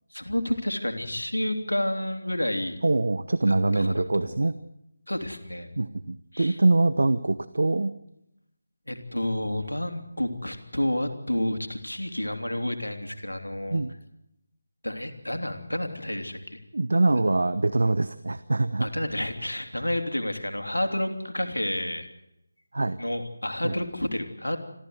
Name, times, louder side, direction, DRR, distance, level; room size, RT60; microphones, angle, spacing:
voice 1, 0.1-2.8 3.5-4.3 5.1-5.7 6.3-6.6 8.9-13.8 14.8-16.6 18.8-22.1 23.0-24.6, left 1 dB, 85° left, 6 dB, 3.3 m, -30 dB
voice 2, 2.8-4.6 5.8-7.9 13.7-13.9 16.7-18.9 22.7-23.0 23.6-23.8, right 2 dB, 60° right, 14 dB, 1.0 m, -24 dB
26.5 x 14.5 x 8.0 m, 0.84 s
figure-of-eight pair, 160°, 0 cm